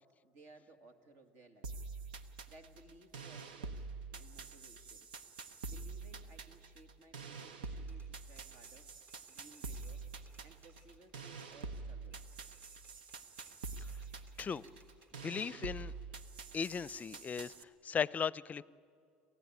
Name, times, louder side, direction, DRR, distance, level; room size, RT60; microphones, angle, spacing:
voice 1, 0.0-1.9 2.5-5.1 5.6-8.9 9.3-10.0 10.4-12.4, right 2 dB, 65° right, 7 dB, 2.4 m, -61 dB
sound 1, 1.6-17.6, right 4 dB, 90° right, 0.9 m, -47 dB
Typewriter, 7.4-11.7 12.0-15.3 15.8-17.5, right 1 dB, 45° right, 3.7 m, -68 dB
voice 2, 15.2-15.9 16.5-17.5 17.8-18.6, left 6 dB, 35° left, 21 dB, 0.5 m, -36 dB
27.5 x 15.0 x 9.4 m, 2.3 s
hypercardioid pair, 75°, 5 cm